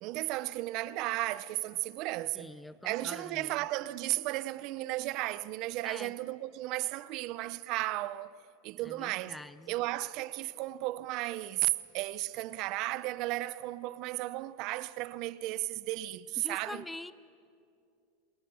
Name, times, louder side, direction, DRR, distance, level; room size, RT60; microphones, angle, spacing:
voice 1, 0.0-2.5 2.8-8.3 8.6-9.4 9.7-16.8, right 17 dB, 45° right, 0.6 m, -34 dB
voice 2, 2.3-3.5 5.9-6.1 8.8-9.7 16.4-17.1, left 2 dB, 5° left, 0.6 m, -45 dB
28.0 x 21.5 x 7.0 m
supercardioid pair, 155°, 0 cm